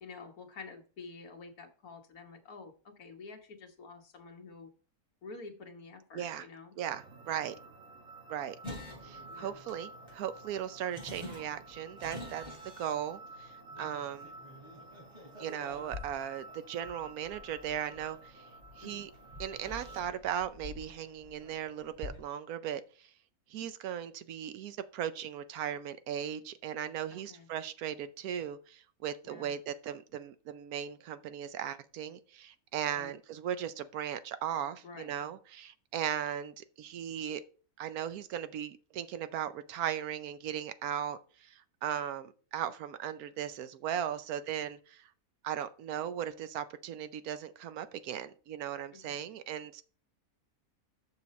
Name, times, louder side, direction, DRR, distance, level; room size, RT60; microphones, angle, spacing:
voice 1, 0.0-4.7 5.2-6.8 9.3-9.6 11.1-11.5 13.7-14.0 18.8-19.0 27.1-27.5 29.2-29.6 33.0-33.2 34.8-35.1 48.9-49.2, left 4 dB, 75° left, 4 dB, 1.8 m, -49 dB
voice 2, 6.1-6.5 6.8-7.5 8.3-8.6 9.0-12.4 12.8-14.3 15.4-18.4 18.8-19.1 19.4-23.1 23.5-37.4 37.8-45.1 45.4-49.8, right 10 dB, 80° right, 12 dB, 1.1 m, -37 dB
sound 1, 6.8-20.0, right 2 dB, 50° right, 1.7 m, -52 dB
sound 2, 8.6-22.2, left 2 dB, 20° right, 3.0 m, -49 dB
6.8 x 6.7 x 4.2 m, 0.39 s
omnidirectional pair, 1.6 m